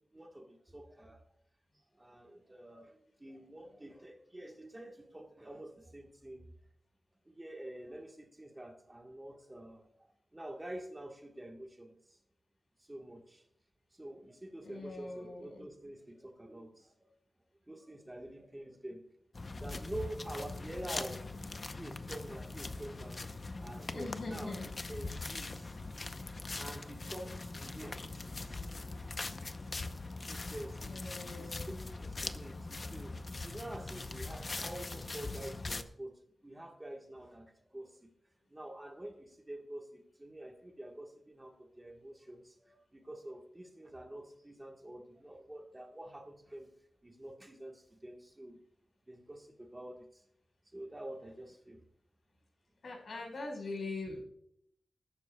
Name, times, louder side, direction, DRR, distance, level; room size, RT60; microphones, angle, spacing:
voice 1, 0.1-1.2 2.0-6.5 7.3-9.9 10.3-12.2 12.8-13.4 13.9-17.1 17.7-19.0 19.6-21.2 21.7-23.2 23.6-24.6 24.9-26.1 26.3-28.7 29.4-29.5 30.3-33.1 33.4-36.1 36.4-38.1 38.5-46.7 47.0-48.6 49.1-50.2 50.7-51.8, right 1 dB, 15° right, 2 dB, 1.3 m, -47 dB
voice 2, 14.6-15.7 23.9-24.7 30.9-31.8 52.8-54.2, left 3 dB, 65° left, 0 dB, 4.4 m, -42 dB
sound 1, 19.3-35.8, left 3 dB, 35° left, 0.6 m, -42 dB
21.5 x 11.5 x 2.2 m, 0.73 s
wide cardioid pair, 140°, 0 cm